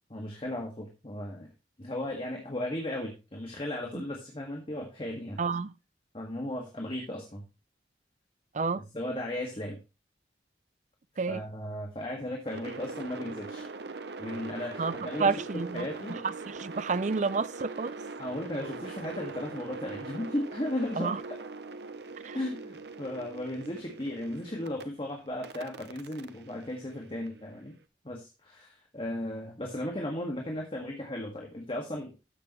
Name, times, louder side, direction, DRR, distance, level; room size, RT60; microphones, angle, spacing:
voice 1, 0.1-1.5 1.8-5.4 6.1-7.4 8.7-9.8 11.3-13.7 14.2-16.2 18.2-21.2 22.3-27.7 28.0-32.1, left 1 dB, 30° left, 1.8 m, -36 dB
voice 2, 5.4-5.7 8.5-8.9 11.2-11.4 14.8-18.0 21.0-21.2 22.2-22.4, right 4 dB, 40° right, 0.5 m, -30 dB
sound 1, 12.4-24.8 25.4-27.6, right 3 dB, 65° right, 0.8 m, -42 dB
13.5 x 6.8 x 3.1 m
head